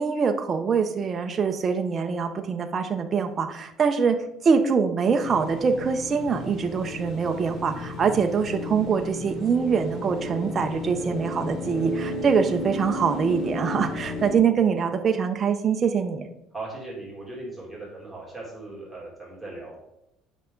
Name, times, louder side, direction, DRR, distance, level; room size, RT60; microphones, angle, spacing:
voice 1, 0.0-4.2 4.4-16.3, right 6 dB, 30° right, 5 dB, 0.5 m, -24 dB
sound 1, 5.2-14.4, left 2 dB, 40° left, 1.9 m, -34 dB
voice 2, 16.5-19.8, right 2 dB, ahead, -5 dB, 2.4 m, -38 dB
8.1 x 5.5 x 3.8 m, 0.81 s
cardioid pair, 140°, 0 cm